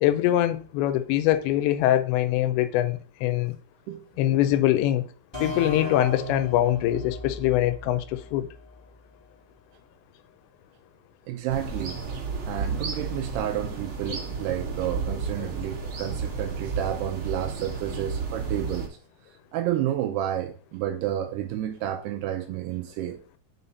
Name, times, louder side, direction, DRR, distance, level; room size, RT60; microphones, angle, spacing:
voice 1, 0.0-3.6 4.2-5.0 5.4-8.5, left 13 dB, 85° left, 2.9 m, -23 dB
sound 1, 5.3-8.9, left 1 dB, 15° left, 0.8 m, -37 dB
voice 2, 11.3-12.0 12.5-19.0 19.5-23.2, right 11 dB, 80° right, 2.5 m, -30 dB
sound 2, 11.5-18.9, right 5 dB, 45° right, 1.9 m, -32 dB
5.7 x 5.6 x 4.0 m
omnidirectional pair, 5.1 m